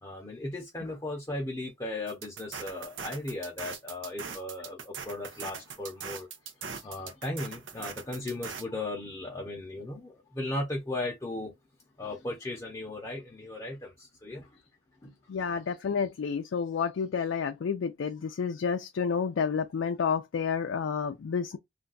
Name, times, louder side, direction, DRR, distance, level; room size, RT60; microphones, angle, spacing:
voice 1, 0.0-6.3 6.8-11.5 12.0-14.6 15.0-15.1, left 2 dB, 20° left, 0.7 m, -36 dB
sound 1, 2.1-8.6, right 6 dB, 80° right, 0.7 m, -41 dB
voice 2, 15.3-21.6, left 6 dB, 85° left, 0.4 m, -30 dB
2.5 x 2.2 x 3.8 m
head